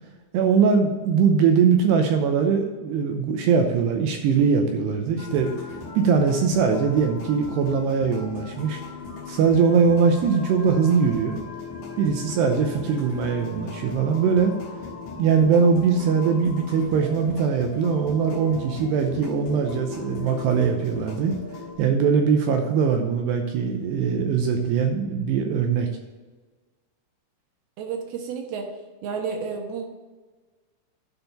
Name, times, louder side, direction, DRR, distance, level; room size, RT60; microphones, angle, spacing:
voice 1, 0.3-5.5 6.0-8.8 9.3-11.4 12.0-14.5 15.2-21.3 21.8-25.9, right 6 dB, 85° right, 4 dB, 2.5 m, -21 dB
sound 1, 5.2-21.8, left 4 dB, 75° left, 1.6 m, -37 dB
voice 2, 27.8-28.7 29.0-29.9, right 5 dB, 70° right, 3 dB, 2.6 m, -31 dB
12.0 x 4.5 x 5.5 m, 1.3 s
omnidirectional pair, 5.5 m